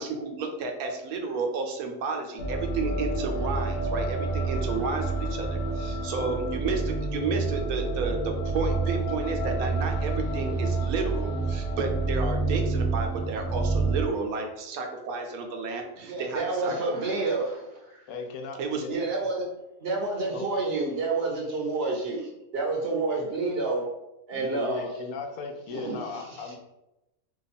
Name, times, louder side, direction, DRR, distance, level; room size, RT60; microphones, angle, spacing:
voice 1, 0.0-16.9 18.6-18.8, right 4 dB, 90° right, 3 dB, 1.1 m, -32 dB
sound 1, 2.4-14.0, right 3 dB, 55° left, 0.7 m, -28 dB
voice 2, 16.0-18.0 18.9-19.5 19.8-23.9 24.3-24.9 25.7-26.5, right 3 dB, 60° right, 0 dB, 0.7 m, -29 dB
voice 3, 18.1-19.0 20.3-20.5 24.3-26.5, left 4 dB, 85° left, 4 dB, 1.0 m, -37 dB
2.8 x 2.3 x 4.0 m, 0.93 s
omnidirectional pair, 1.5 m